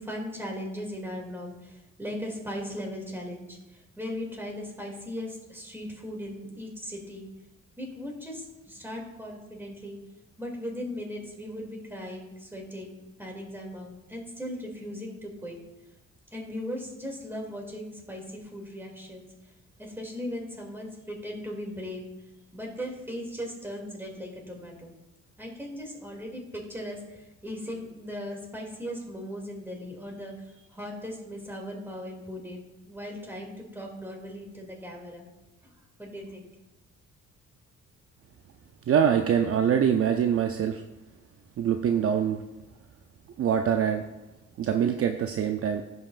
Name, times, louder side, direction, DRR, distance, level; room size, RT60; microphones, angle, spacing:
voice 1, 0.0-7.3 7.8-10.0 10.4-15.6 16.3-19.3 19.8-22.0 22.5-24.9 25.4-35.3 35.6-35.7 36.0-36.5, equal, 5° right, -1 dB, 2.5 m, -38 dB
voice 2, 38.9-40.8 41.6-42.4 43.4-44.0 44.6-45.8, right 8 dB, 50° right, 6 dB, 0.5 m, -24 dB
16.0 x 5.5 x 2.5 m, 1.0 s
cardioid pair, 90°, 30 cm